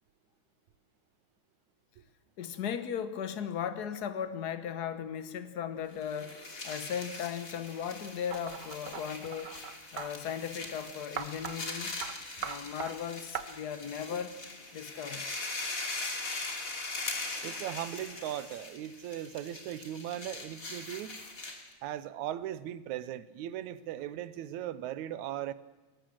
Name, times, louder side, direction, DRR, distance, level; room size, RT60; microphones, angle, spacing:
voice 1, 2.4-6.4 6.6-9.5 9.9-12.0 12.4-14.4 14.7-15.2, left 8 dB, 75° left, 11 dB, 0.9 m, -37 dB
sound 1, 5.9-21.7, left 3 dB, 30° left, 2.9 m, -41 dB
sound 2, 8.3-10.1 11.2-11.6 12.0-12.1 12.4-12.9 13.3-13.4, right 8 dB, 60° right, 1.1 m, -39 dB
voice 2, 17.4-21.2 21.8-25.5, right 12 dB, 80° right, 16 dB, 2.2 m, -38 dB
21.5 x 18.0 x 7.6 m, 1.2 s
omnidirectional pair, 3.4 m